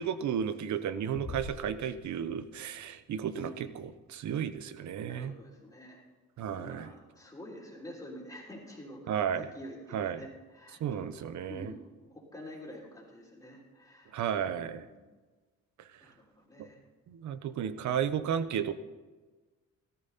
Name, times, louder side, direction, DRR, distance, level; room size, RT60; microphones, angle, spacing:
voice 1, 0.0-3.7 4.1-5.3 6.4-6.9 9.1-9.5 9.9-10.2 10.8-11.7 14.1-14.8 16.6-16.7 17.1-18.7, right 8 dB, 70° right, 13 dB, 0.9 m, -33 dB
sound 1, 1.1-2.9, left 2 dB, 65° left, 2.5 m, -44 dB
voice 2, 5.0-6.0 6.4-15.0 16.0-16.8, equal, 15° left, -7 dB, 3.5 m, -48 dB
14.0 x 14.0 x 4.2 m, 1.3 s
cardioid pair, 90°, 30 cm